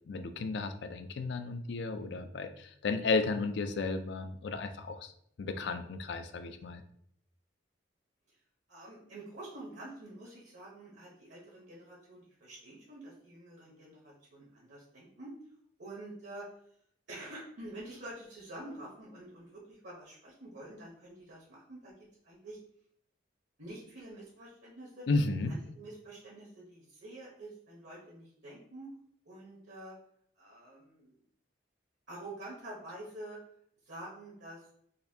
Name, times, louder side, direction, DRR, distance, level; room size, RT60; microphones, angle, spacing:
voice 1, 0.1-5.1 5.4-6.8 25.1-25.5, left 3 dB, 65° left, 9 dB, 0.4 m, -33 dB
voice 2, 8.7-15.3 15.8-16.5 17.1-21.9 22.2-22.6 23.6-25.1 25.5-28.9 29.3-30.0 30.4-31.1 32.1-33.4 33.8-34.7, right 1 dB, 70° right, -4 dB, 0.9 m, -47 dB
4.0 x 2.6 x 2.7 m, 0.67 s
head